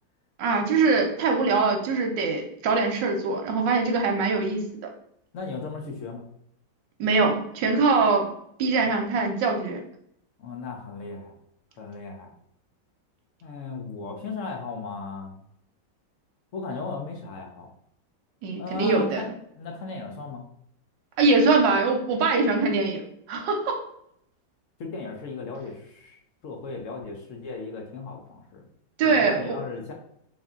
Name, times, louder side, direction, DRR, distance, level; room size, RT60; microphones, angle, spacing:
voice 1, 0.4-4.6 7.0-8.3 8.6-9.8 18.4-19.2 21.2-23.0 23.3-23.7 29.0-29.6, right 4 dB, 85° right, 2 dB, 1.3 m, -23 dB
voice 2, 5.3-6.2 10.4-11.3 11.8-12.3 13.4-15.4 16.5-17.7 18.6-19.3 19.6-20.4 24.8-28.7 29.0-29.9, left 4 dB, 65° left, 1 dB, 0.7 m, -36 dB
3.5 x 2.6 x 3.5 m, 0.73 s
omnidirectional pair, 1.9 m